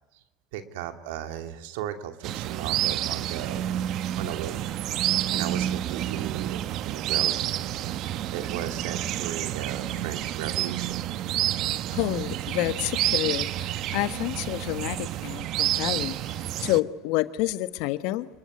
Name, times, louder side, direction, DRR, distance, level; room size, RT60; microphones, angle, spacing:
voice 1, 0.5-3.8 4.2-4.7 5.0-7.4 8.3-11.0, right 10 dB, 80° right, 2.6 m, -36 dB
sound 1, 2.2-16.8, right 12 dB, 60° right, 1.2 m, -29 dB
voice 2, 11.9-18.3, left 17 dB, 75° left, 1.4 m, -29 dB
28.0 x 22.0 x 9.7 m
hypercardioid pair, 80°, 0 cm